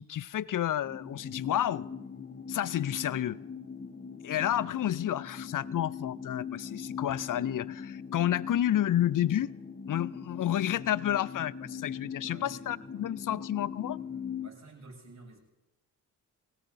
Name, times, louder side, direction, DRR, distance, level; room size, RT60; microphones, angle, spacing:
voice 1, 0.0-1.9 2.5-3.4 4.2-9.5 9.9-14.0, left 11 dB, 45° left, 0.5 m, -30 dB
sound 1, 0.8-14.5, left 7 dB, 20° left, 0.8 m, -41 dB
voice 2, 12.2-13.1 14.4-15.4, right 3 dB, 35° right, 6.8 m, -52 dB
22.0 x 18.0 x 2.7 m
supercardioid pair, 45°, 45 cm